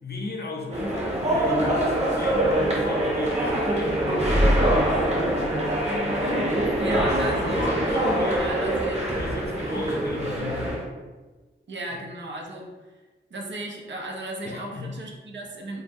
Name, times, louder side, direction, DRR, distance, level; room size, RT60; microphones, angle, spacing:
voice 1, 0.0-5.1 6.7-8.7 8.9-10.8 11.9-12.0 14.4-14.9, left 2 dB, 55° left, 1 dB, 0.6 m, -36 dB
sound 1, 0.7-10.8, right 1 dB, 35° right, 0.9 m, -24 dB
voice 2, 5.9-7.6 8.4-9.0 9.7-9.9 11.7-12.7 13.3-15.8, right 1 dB, 65° right, 0 dB, 0.6 m, -35 dB
3.0 x 2.2 x 3.5 m, 1.2 s
wide cardioid pair, 90°, 20 cm